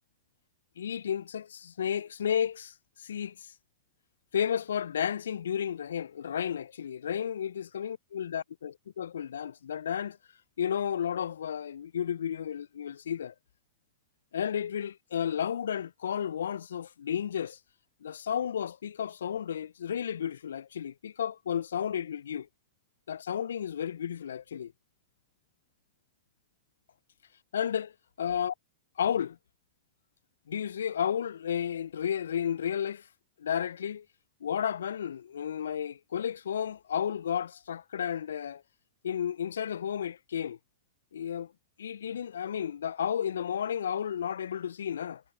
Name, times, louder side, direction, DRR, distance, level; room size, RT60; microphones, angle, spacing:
voice 1, 0.8-3.5 4.3-10.2 10.6-13.3 14.3-17.6 18.0-22.5 23.1-24.7 27.5-27.9 28.2-28.5 29.0-29.4 30.5-33.1 33.4-34.1 34.4-38.6 39.0-40.6 41.1-41.5 41.8-45.2, left 8 dB, 70° left, 0.5 m, -32 dB
figure-of-eight pair, 95°, 0 cm